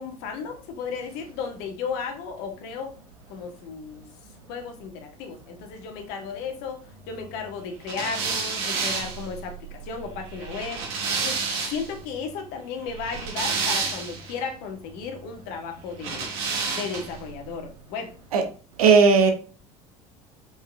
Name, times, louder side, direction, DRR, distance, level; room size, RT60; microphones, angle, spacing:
voice 1, 0.0-3.0 3.3-4.1 4.5-11.4 11.7-16.4 16.7-18.1, left 5 dB, 60° left, 4 dB, 1.8 m, -34 dB
sound 1, 7.9-12.0 12.9-14.3 16.0-17.2, right 5 dB, 60° right, 2.3 m, -29 dB
voice 2, 18.8-19.3, right 5 dB, 80° right, 6 dB, 1.2 m, -16 dB
5.5 x 5.5 x 3.5 m, 0.36 s
hypercardioid pair, 70°, 18 cm